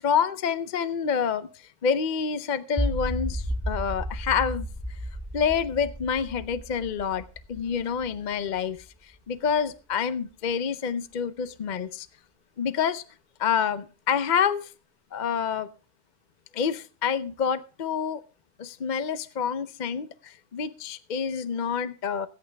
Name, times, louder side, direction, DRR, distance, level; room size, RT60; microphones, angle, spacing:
voice 1, 0.0-1.5 1.8-4.7 5.3-7.2 7.5-8.8 9.0-12.1 12.6-13.0 13.4-14.7 15.1-15.7 16.5-18.2 18.6-22.3, left 7 dB, 50° left, 12 dB, 0.7 m, -27 dB
sound 1, 2.8-8.9, equal, 5° left, 1.2 m, -33 dB
19.0 x 8.7 x 3.3 m, 0.34 s
omnidirectional pair, 1.2 m